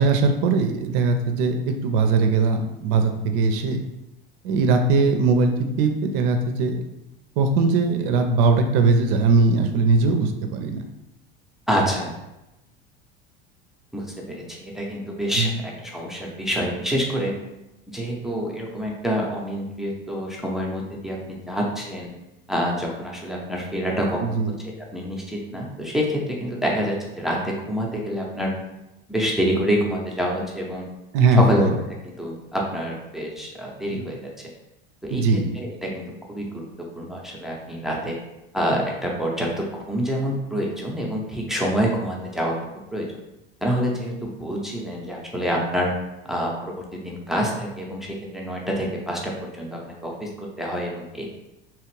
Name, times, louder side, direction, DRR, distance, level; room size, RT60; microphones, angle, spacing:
voice 1, 0.0-3.8 4.4-6.8 7.4-10.8 15.4-15.6 24.2-24.6 31.1-31.8 33.9-34.0 35.1-35.5, right 4 dB, 65° right, 6 dB, 0.5 m, -20 dB
voice 2, 11.7-12.1 13.9-17.3 17.9-22.1 22.5-24.4 24.9-28.5 29.1-30.9 31.4-31.7 32.2-34.3 35.0-36.0 36.3-36.7 36.9-38.2 38.5-42.5 42.9-43.2 43.6-45.9 46.3-51.3, equal, ahead, -2 dB, 0.6 m, -27 dB
2.9 x 2.4 x 3.1 m, 0.93 s
hypercardioid pair, 85°, 29 cm